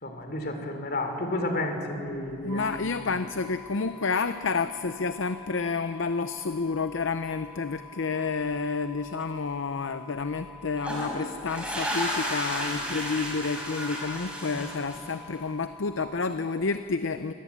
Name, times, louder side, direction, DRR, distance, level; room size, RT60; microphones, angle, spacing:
voice 1, 0.0-2.7, left 1 dB, 50° left, 5 dB, 3.2 m, -31 dB
voice 2, 2.4-17.3, left 4 dB, 65° left, 10 dB, 0.6 m, -30 dB
sound 1, 2.5-16.0, left 3 dB, 75° right, 2.2 m, -48 dB
sound 2, 10.8-15.3, equal, 5° right, 5.0 m, -33 dB
23.5 x 18.0 x 8.4 m, 2.6 s
head